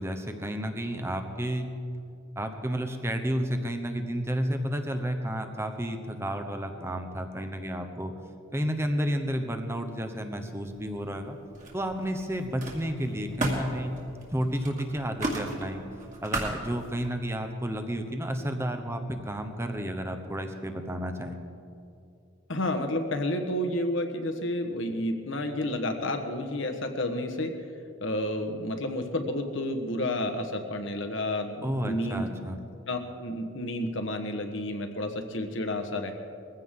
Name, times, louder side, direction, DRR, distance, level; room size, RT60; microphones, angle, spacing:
voice 1, 0.0-1.7 2.4-8.1 8.5-11.4 11.7-13.9 14.3-15.8 16.2-21.4 31.6-32.6, equal, 10° right, 6 dB, 0.9 m, -31 dB
Camera, 10.6-11.2 11.5-17.1, right 1 dB, 35° right, 2.4 m, -36 dB
voice 2, 22.5-27.6 28.0-32.3 32.9-36.1, left 1 dB, 60° left, 6 dB, 1.3 m, -30 dB
21.0 x 15.5 x 3.8 m, 2.6 s
head